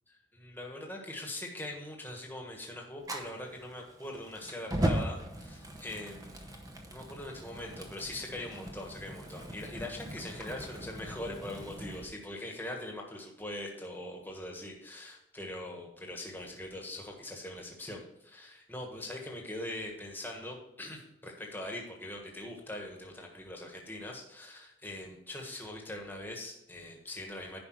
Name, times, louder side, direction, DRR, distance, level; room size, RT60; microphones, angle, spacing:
voice 1, 0.3-6.6 6.9-27.6, left 1 dB, 10° left, 0 dB, 1.4 m, -42 dB
Fire, 3.0-12.0, right 1 dB, 20° right, 0.8 m, -38 dB
10.5 x 5.2 x 4.7 m, 0.84 s
head